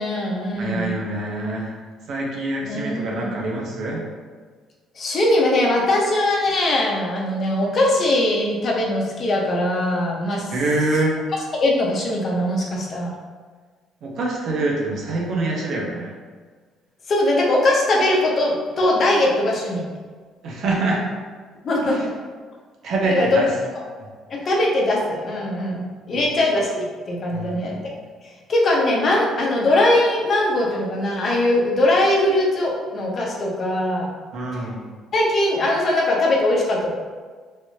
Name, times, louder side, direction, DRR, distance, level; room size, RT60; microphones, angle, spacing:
voice 1, 0.0-1.1 2.7-3.3 5.0-10.6 11.6-13.1 17.1-19.8 21.6-22.0 23.1-23.4 23.7-23.8 24.3-27.9 28.2-34.1 34.5-34.6 35.1-36.9, left 1 dB, 45° left, -2 dB, 0.8 m, -21 dB
voice 2, 0.6-1.7 2.1-4.0 10.5-11.2 14.0-16.1 20.4-21.0 21.8-22.0 22.8-23.5 26.1-26.3 27.3-27.6 34.3-34.8, right 2 dB, 65° right, -2 dB, 0.8 m, -25 dB
3.2 x 3.0 x 2.8 m, 1.5 s
cardioid pair, 85°, 0 cm